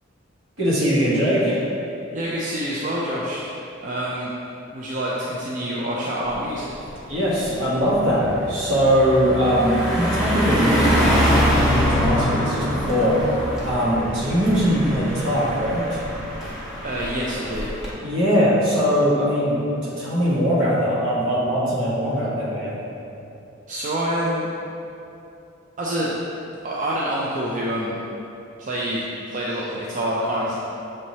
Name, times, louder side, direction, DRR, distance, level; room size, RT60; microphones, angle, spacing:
voice 1, 0.6-1.6 7.1-13.2 13.6-16.0 18.0-22.8, equal, 65° right, -6 dB, 1.1 m, -21 dB
voice 2, 2.1-3.5 3.8-4.3 4.7-6.7 16.8-17.7 23.7-24.5 25.8-26.1 26.6-28.0 28.6-30.6, right 1 dB, 40° right, -5 dB, 0.4 m, -26 dB
Car passing by, 6.3-6.6 6.9-17.9, equal, ahead, 0.7 m, -24 dB
6.3 x 3.0 x 2.7 m, 2.8 s
head